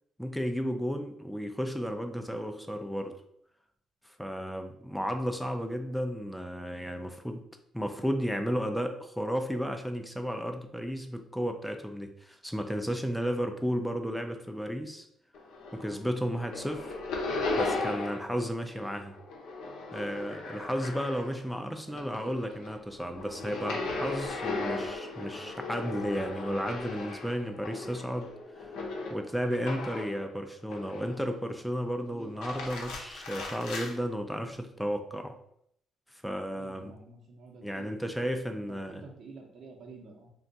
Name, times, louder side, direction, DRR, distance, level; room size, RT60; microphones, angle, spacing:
voice 1, 0.2-3.2 4.0-7.4 7.7-15.1 15.7-17.0 17.6-19.1 19.9-28.3 28.6-28.8 29.1-35.4 36.1-36.9 37.6-39.0, equal, ahead, 5 dB, 0.4 m, -33 dB
sound 1, 15.3-16.1 16.3-18.4 18.6-21.5 21.9-30.2 30.7-31.4 32.2-33.9, left 3 dB, 90° left, 0.6 m, -37 dB
voice 2, 32.1-32.6 36.5-38.0 38.5-40.3, right 3 dB, 60° right, 2 dB, 0.8 m, -50 dB
2.5 x 2.3 x 3.8 m, 0.71 s
cardioid pair, 90°, 0 cm